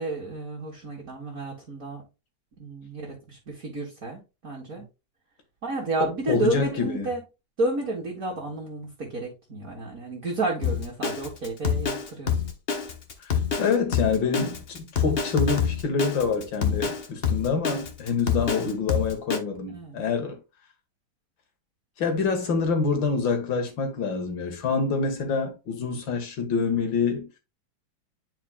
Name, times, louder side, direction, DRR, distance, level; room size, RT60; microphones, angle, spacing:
voice 1, 0.0-2.0 2.6-4.8 5.6-7.2 7.6-12.3 16.6-16.9 19.7-20.0, right 2 dB, 45° right, 1.9 m, -31 dB
voice 2, 6.0-7.1 13.2-13.3 13.6-20.4 22.0-27.3, left 5 dB, 70° left, 2.2 m, -26 dB
Drum kit, 10.6-19.4, left 7 dB, 40° left, 0.9 m, -26 dB
9.1 x 5.0 x 2.3 m
omnidirectional pair, 2.1 m